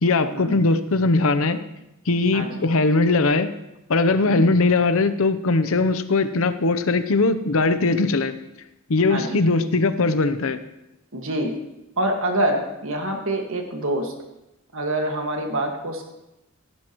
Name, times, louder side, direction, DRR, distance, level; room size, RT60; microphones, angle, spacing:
voice 1, 0.0-1.6 2.1-3.5 3.9-8.3 8.9-10.6, left 3 dB, 70° left, 11 dB, 0.7 m, -20 dB
voice 2, 2.3-2.7 4.2-4.5 9.1-9.4 11.1-11.6 12.0-14.1 14.7-16.0, right 1 dB, 65° right, 3 dB, 1.8 m, -26 dB
16.5 x 10.5 x 3.1 m, 0.91 s
head